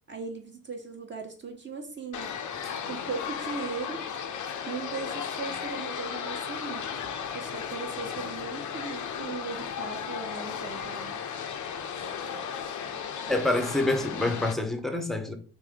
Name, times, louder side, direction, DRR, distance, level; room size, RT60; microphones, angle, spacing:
voice 1, 0.1-2.3 2.9-4.0 4.2-4.4 4.6-11.2 11.9-12.1, right 4 dB, 30° right, 1.1 m, -38 dB
sound 1, 2.1-14.5, left 7 dB, 50° left, 0.6 m, -35 dB
voice 2, 13.3-15.3, left 2 dB, ahead, 0.8 m, -27 dB
3.4 x 2.6 x 3.7 m
hypercardioid pair, 45°, 38 cm